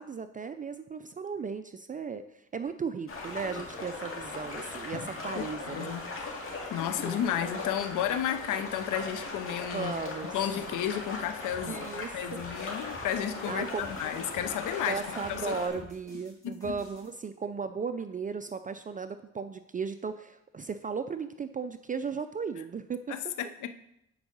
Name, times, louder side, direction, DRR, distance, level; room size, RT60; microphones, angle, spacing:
voice 1, 0.0-6.0 9.7-10.3 11.7-12.4 13.5-13.9 14.9-23.1, right 5 dB, 25° right, 10 dB, 0.4 m, -36 dB
sound 1, 3.1-15.7, left 3 dB, 45° left, 2.2 m, -39 dB
voice 2, 5.4-6.1 6.7-9.9 10.3-15.0 15.3-15.8 16.4-16.7 23.1-23.7, left 10 dB, 80° left, 11 dB, 0.7 m, -33 dB
sound 2, 11.5-17.1, equal, 10° left, 3.4 m, -52 dB
8.8 x 4.8 x 5.2 m, 0.80 s
cardioid pair, 90°, 30 cm